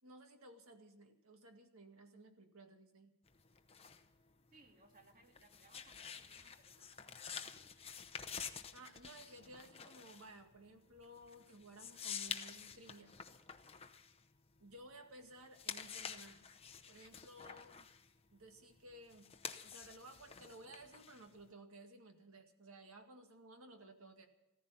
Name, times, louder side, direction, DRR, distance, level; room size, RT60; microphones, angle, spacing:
voice 1, 0.0-3.1 8.7-13.1 14.6-16.5 16.9-17.9 18.3-19.3 19.6-24.3, right 1 dB, 70° right, 5 dB, 2.0 m, -57 dB
sound 1, 3.3-15.0 15.4-21.5, left 7 dB, 25° left, 0.8 m, -49 dB
voice 2, 4.5-7.7, right 2 dB, 40° right, 3 dB, 2.0 m, -66 dB
15.0 x 14.5 x 5.6 m, 0.95 s
head